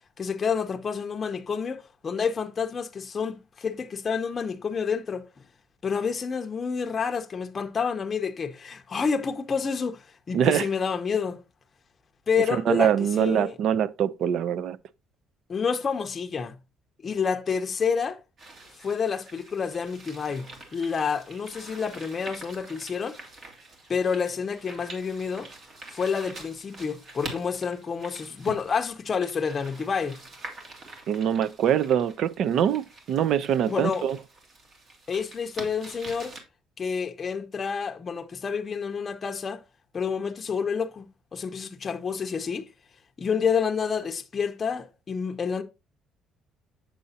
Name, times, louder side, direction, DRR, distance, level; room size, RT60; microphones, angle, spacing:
voice 1, 0.2-5.3 5.8-11.4 12.3-13.6 15.5-16.6 17.0-18.2 18.8-20.5 20.7-23.2 23.9-25.5 25.9-30.2 33.7-34.0 35.1-36.3 36.8-39.6 39.9-41.1 41.3-42.7 43.2-45.6, left 6 dB, 30° left, 0.7 m, -29 dB
voice 2, 10.3-10.7 12.7-14.8 31.1-34.2, right 9 dB, 60° right, 0.5 m, -24 dB
sound 1, 18.4-36.4, right 2 dB, 45° right, 2.1 m, -46 dB
7.5 x 6.8 x 2.7 m
cardioid pair, 135°, 0 cm